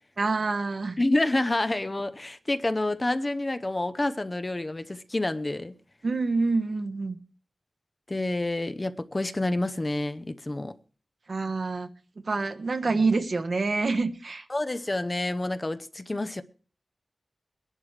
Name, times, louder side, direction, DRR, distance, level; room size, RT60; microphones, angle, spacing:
voice 1, 0.2-1.0 6.0-7.2 11.3-11.9 12.2-14.4, right 3 dB, 65° right, 1.2 m, -27 dB
voice 2, 1.0-5.7 8.1-10.7 12.9-13.0 14.5-16.4, left 2 dB, 30° left, 0.8 m, -28 dB
21.5 x 11.0 x 3.4 m
wide cardioid pair, 65°, 0 cm